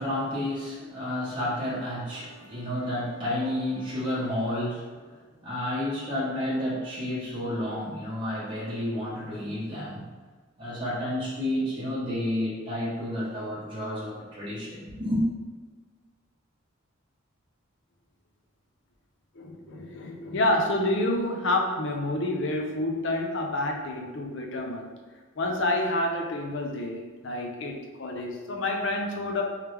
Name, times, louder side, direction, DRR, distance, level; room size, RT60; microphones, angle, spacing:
voice 1, 0.0-5.2 5.4-10.0 10.6-15.2, left 1 dB, 25° right, -9 dB, 1.0 m, -31 dB
voice 2, 19.3-24.9 25.4-29.4, left 1 dB, 60° left, 2 dB, 0.6 m, -28 dB
3.4 x 3.2 x 3.1 m, 1.4 s
head